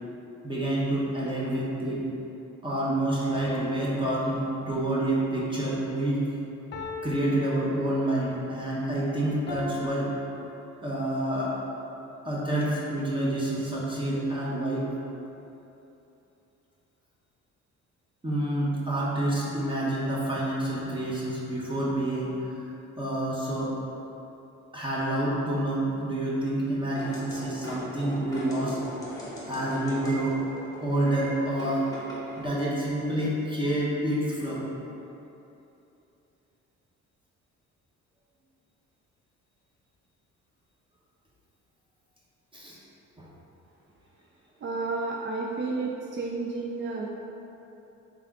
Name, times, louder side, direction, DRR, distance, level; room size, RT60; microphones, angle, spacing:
voice 1, 0.4-2.1 2.6-6.2 7.0-10.1 10.8-11.6 12.2-14.9 18.2-22.6 23.0-23.7 24.7-28.8 29.5-30.4 30.8-31.9 32.3-34.7 42.5-42.8 43.2-43.3, right 1 dB, 15° right, -7 dB, 0.9 m, -28 dB
sound 1, 3.3-5.2 6.7-8.3 9.5-11.2, left 2 dB, 35° left, 0.6 m, -40 dB
sound 2, 27.0-32.5, equal, 10° left, 1.1 m, -40 dB
voice 2, 44.6-47.1, right 3 dB, 40° right, -1 dB, 0.4 m, -31 dB
3.5 x 3.4 x 3.6 m, 2.9 s
cardioid pair, 90°, 30 cm